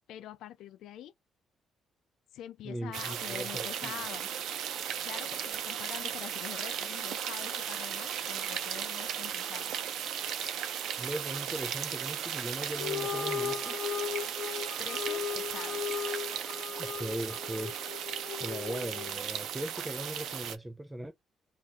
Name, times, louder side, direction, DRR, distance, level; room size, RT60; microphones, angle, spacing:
voice 1, 0.1-1.1 2.3-4.3 5.0-9.7 14.8-16.1, left 11 dB, 70° left, 0.3 m, -45 dB
voice 2, 2.6-3.9 11.0-13.8 16.8-17.7 18.4-21.1, right 1 dB, 5° right, 0.4 m, -39 dB
sound 1, 2.9-20.6, right 9 dB, 70° right, 0.6 m, -36 dB
sound 2, 12.7-19.3, left 8 dB, 40° left, 0.8 m, -37 dB
3.6 x 2.4 x 4.0 m
cardioid pair, 165°, 0 cm